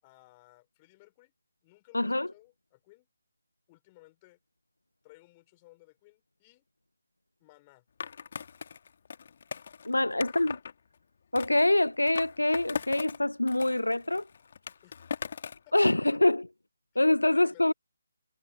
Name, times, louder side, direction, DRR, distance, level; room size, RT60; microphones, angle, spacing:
voice 1, 0.0-1.3 1.6-3.1 3.7-4.4 5.0-6.7 7.4-7.8 9.9-10.2 14.8-15.1 15.6-15.9 16.9-17.7, left 21 dB, 20° left, 4.3 m, -59 dB
voice 2, 1.9-2.3 9.8-10.6 11.3-14.3 15.7-16.4 17.0-17.7, left 1 dB, 80° left, 0.5 m, -25 dB
Skateboard, 8.0-10.7 11.4-13.2 13.5-15.7, left 6 dB, 45° left, 1.7 m, -39 dB
figure-of-eight pair, 150°, 0 cm